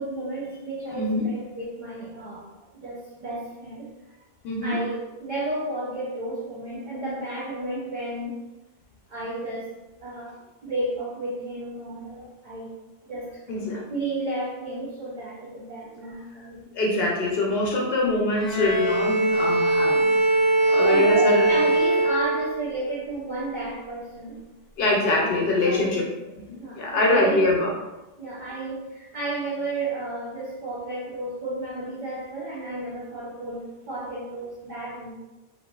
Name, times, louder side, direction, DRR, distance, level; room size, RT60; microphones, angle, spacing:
voice 1, 0.0-2.5 2.8-3.9 4.6-8.4 9.1-9.7 10.0-12.7 13.1-13.4 13.9-16.7 20.5-24.4 25.2-27.4 28.2-35.1, right 2 dB, 55° right, -7 dB, 0.7 m, -32 dB
voice 2, 0.9-1.3 4.4-4.8 13.5-13.8 16.7-20.1 20.7-21.5 24.8-26.0 26.5-27.7, left 2 dB, 70° left, -2 dB, 0.8 m, -24 dB
Bowed string instrument, 18.4-22.8, right 2 dB, ahead, 0.4 m, -21 dB
2.6 x 2.4 x 2.3 m, 1.1 s
omnidirectional pair, 1.1 m